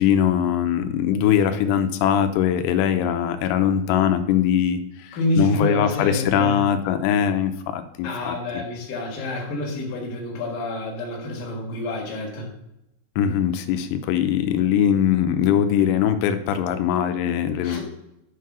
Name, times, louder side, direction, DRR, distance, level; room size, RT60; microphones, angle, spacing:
voice 1, 0.0-8.4 13.2-17.8, left 9 dB, 90° left, 8 dB, 3.4 m, -21 dB
voice 2, 5.1-6.6 8.0-12.5 17.6-17.8, left 2 dB, 55° left, -1 dB, 2.8 m, -28 dB
9.1 x 4.7 x 6.1 m, 0.85 s
omnidirectional pair, 5.8 m